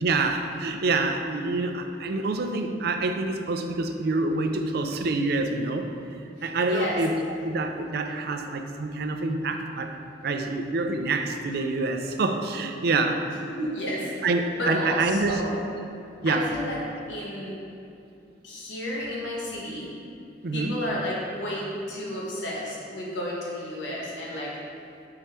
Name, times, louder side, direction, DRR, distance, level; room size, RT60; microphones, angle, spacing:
voice 1, 0.0-5.9 6.4-9.9 10.2-13.2 14.2-15.4 16.2-16.5 20.4-20.8, right 3 dB, 55° right, 5 dB, 0.4 m, -26 dB
voice 2, 6.6-7.0 13.5-14.1 14.6-15.6 16.2-16.8 17.1-17.6 18.4-19.9 20.5-24.5, left 1 dB, 75° left, -5 dB, 1.4 m, -31 dB
5.1 x 4.7 x 4.3 m, 2.6 s
head